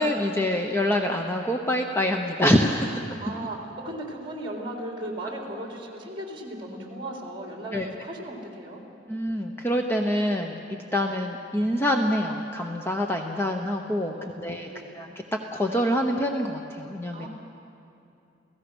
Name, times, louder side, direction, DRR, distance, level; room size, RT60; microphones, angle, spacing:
voice 1, 0.0-3.0 7.7-7.9 9.1-14.1 14.4-14.7 15.0-15.1 15.5-17.3, equal, 15° left, 2 dB, 1.0 m, -25 dB
voice 2, 3.2-8.8 14.1-15.0 17.1-17.3, right 1 dB, 30° right, 0 dB, 3.4 m, -37 dB
30.0 x 16.5 x 6.2 m, 2.6 s
head